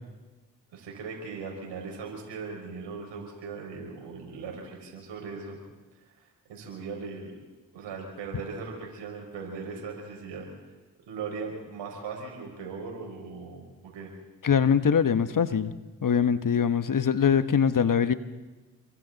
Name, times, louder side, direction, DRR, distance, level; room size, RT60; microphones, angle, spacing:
voice 1, 0.7-5.6 6.2-7.3 7.7-10.5 11.1-14.1, right 4 dB, 80° right, 1 dB, 5.5 m, -39 dB
voice 2, 14.4-15.7 16.0-18.1, left 7 dB, 45° left, 12 dB, 1.3 m, -23 dB
29.0 x 23.5 x 4.1 m, 1.2 s
hypercardioid pair, 40°, 43 cm